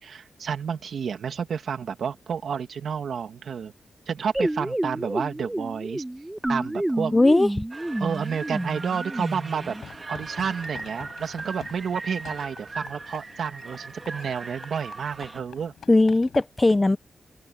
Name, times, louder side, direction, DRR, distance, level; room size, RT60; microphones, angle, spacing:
voice 1, 0.0-3.7 4.1-6.0 6.5-7.1 8.0-9.8 10.1-15.7, right 7 dB, 75° right, 2.3 m, -30 dB
sound 1, 4.3-9.8, right 1 dB, 10° right, 1.5 m, -30 dB
voice 2, 7.1-7.5 15.9-17.0, left 2 dB, 20° left, 0.7 m, -18 dB
sound 2, 7.7-15.4, right 3 dB, 35° right, 2.3 m, -39 dB
sound 3, 9.5-16.4, left 8 dB, 85° left, 6.1 m, -47 dB
open air
cardioid pair, 85°, 0 cm